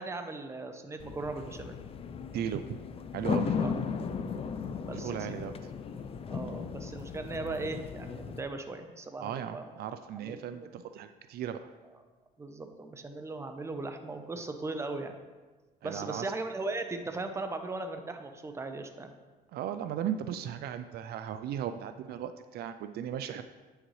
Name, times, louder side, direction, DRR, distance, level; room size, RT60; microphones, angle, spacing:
voice 1, 0.0-1.8 3.6-3.7 4.8-5.5 6.3-9.7 10.2-10.7 12.4-15.2 15.8-19.1, right 3 dB, 15° right, 6 dB, 0.7 m, -38 dB
sound 1, 1.0-8.4, left 6 dB, 35° left, 0.4 m, -36 dB
voice 2, 2.3-2.7 3.1-3.6 4.9-5.7 9.2-11.6 15.8-16.3 19.5-23.4, right 9 dB, 65° right, 10 dB, 0.4 m, -36 dB
8.7 x 6.4 x 3.2 m, 1.3 s
cardioid pair, 110°, 17 cm